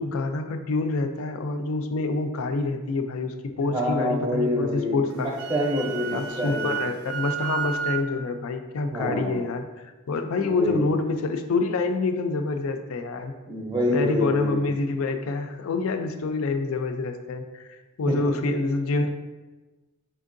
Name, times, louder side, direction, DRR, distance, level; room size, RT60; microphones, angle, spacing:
voice 1, 0.0-5.3 6.1-13.4 13.9-19.1, left 3 dB, 80° left, 7 dB, 0.4 m, -27 dB
voice 2, 3.7-5.2 5.5-6.7 8.9-9.4 10.3-10.9 13.5-14.6 18.1-18.2, left 1 dB, 15° right, -3 dB, 0.5 m, -26 dB
Wind instrument woodwind instrument, 5.1-8.0, right 8 dB, 85° right, 0.4 m, -31 dB
4.5 x 3.6 x 2.5 m, 1.2 s
head